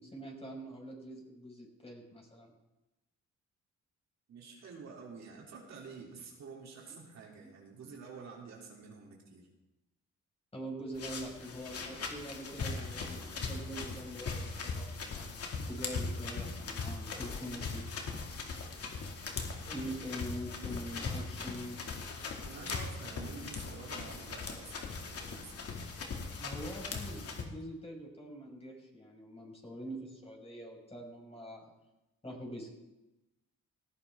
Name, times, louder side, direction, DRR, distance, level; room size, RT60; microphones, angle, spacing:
voice 1, 0.0-2.5 7.4-7.5 10.5-15.3 15.7-17.9 19.7-21.8 26.4-31.7 32.2-32.7, equal, 20° left, -1 dB, 5.4 m, -44 dB
voice 2, 4.3-9.5 22.4-25.5, right 5 dB, 65° right, -1 dB, 3.2 m, -49 dB
sound 1, 10.9-27.4, left 4 dB, 50° left, 2.4 m, -40 dB
19.0 x 14.5 x 3.6 m, 1.0 s
cardioid pair, 90°, 30 cm